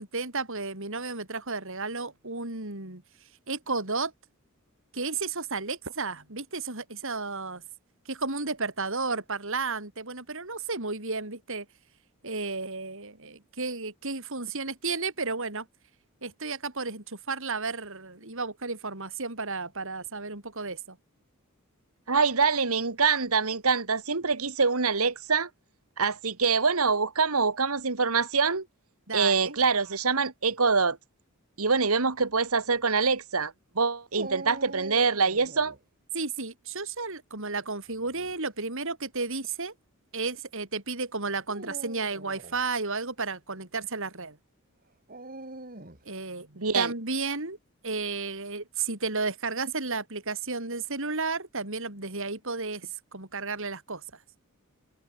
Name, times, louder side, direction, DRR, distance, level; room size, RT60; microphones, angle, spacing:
voice 1, 0.0-3.0 3.5-4.1 4.9-7.6 8.1-11.7 12.2-15.7 16.2-21.0 29.1-29.6 36.1-39.7 40.1-44.4 46.1-47.6 47.8-54.0, right 4 dB, 65° right, 5.5 m, -33 dB
voice 2, 22.1-25.5 26.0-28.7 29.1-31.0 31.6-35.7 46.6-46.9, right 4 dB, 80° right, 2.0 m, -25 dB
Dog, 34.1-35.8 37.9-38.3 39.1-39.2 41.4-42.6 45.1-46.1, right 2 dB, 40° right, 7.9 m, -43 dB
open air
head